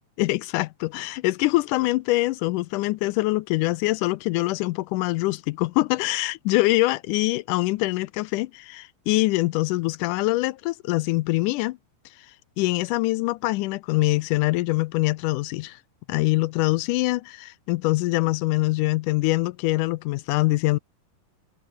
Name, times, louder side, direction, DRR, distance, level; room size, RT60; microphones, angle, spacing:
voice 1, 0.2-11.8 12.6-15.8 16.1-20.8, left 20 dB, 80° left, 1.9 m, -24 dB
omnidirectional pair, 4.1 m